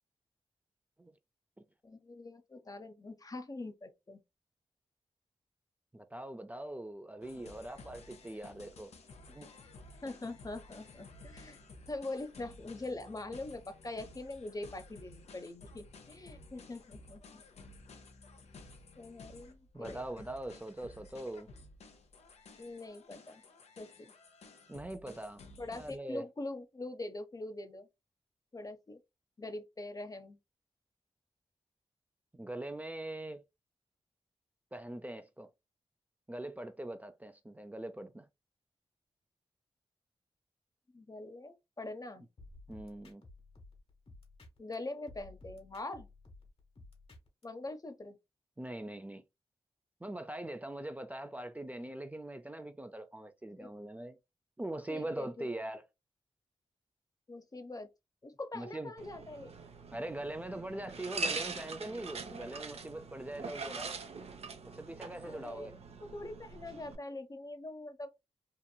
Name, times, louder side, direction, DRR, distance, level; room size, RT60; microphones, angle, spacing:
voice 1, 1.8-4.2 10.0-11.6 11.9-17.4 19.0-20.0 22.6-23.4 23.8-24.1 25.6-27.9 28.5-29.0 29.4-30.4 40.9-42.3 44.6-46.1 47.4-48.2 53.6-53.7 54.9-55.5 57.3-57.9 58.2-59.7 65.2-68.1, left 2 dB, 35° left, 0.6 m, -43 dB
voice 2, 5.9-8.9 9.3-9.5 19.7-21.5 24.7-25.4 25.7-26.2 32.3-33.4 34.7-35.5 36.3-38.3 42.7-43.2 48.6-49.2 50.0-54.2 54.6-55.8 58.5-58.9 59.9-64.0 64.7-65.7, right 1 dB, 15° right, 0.4 m, -42 dB
sound 1, 7.2-26.0, left 3 dB, 80° left, 0.6 m, -54 dB
sound 2, 42.4-44.7 45.1-47.4, left 2 dB, 65° left, 1.3 m, -55 dB
sound 3, 59.0-66.9, right 4 dB, 70° right, 0.6 m, -42 dB
2.9 x 2.5 x 2.2 m
cardioid pair, 45°, 11 cm